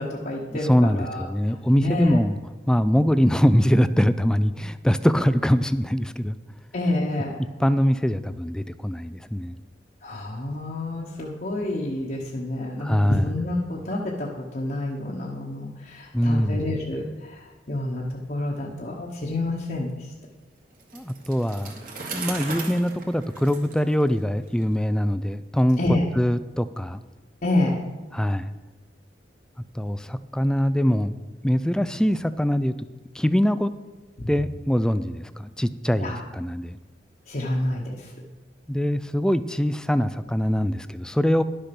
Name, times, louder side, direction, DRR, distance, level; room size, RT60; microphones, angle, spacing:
voice 1, 0.0-1.3 1.8-2.2 6.7-7.4 10.0-18.0 18.3-20.1 25.8-26.0 27.4-27.8 34.2-34.3 36.0-36.2 37.3-38.1, left 1 dB, 50° left, -4 dB, 1.2 m, -28 dB
voice 2, 0.5-2.4 2.7-6.4 7.6-9.5 12.8-13.3 16.1-16.7 20.9-21.8 22.1-25.8 26.2-27.0 28.1-28.5 29.8-31.1 31.4-32.7 33.1-33.7 34.3-36.8 38.7-41.4, equal, 5° left, 13 dB, 0.3 m, -23 dB
Bicycle, 20.8-24.6, right 4 dB, 50° right, 1.8 m, -37 dB
11.5 x 6.5 x 6.0 m, 1.2 s
head